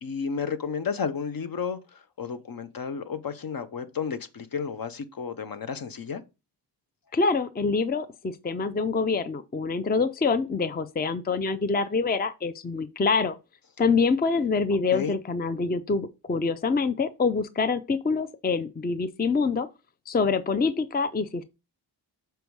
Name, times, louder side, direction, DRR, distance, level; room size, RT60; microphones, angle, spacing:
voice 1, 0.0-1.8 2.2-6.2 14.9-15.1, left 6 dB, 55° left, 0.9 m, -32 dB
voice 2, 7.1-13.4 13.8-19.7 20.1-21.4, left 4 dB, 25° left, 0.5 m, -25 dB
6.8 x 4.6 x 4.7 m
wide cardioid pair, 95°, 41 cm